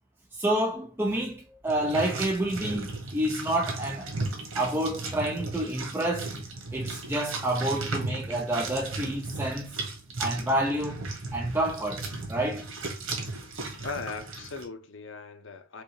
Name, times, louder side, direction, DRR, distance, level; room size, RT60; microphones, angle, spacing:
voice 1, 0.3-4.1 4.5-6.3 6.7-9.8 10.2-11.1 11.3-12.0 12.3-12.7, right 1 dB, 10° right, 0.5 m, -28 dB
sound 1, 1.7-14.6, right 3 dB, 75° right, 1.4 m, -36 dB
voice 2, 13.8-15.8, left 4 dB, 65° left, 0.7 m, -38 dB
4.9 x 2.1 x 4.7 m
head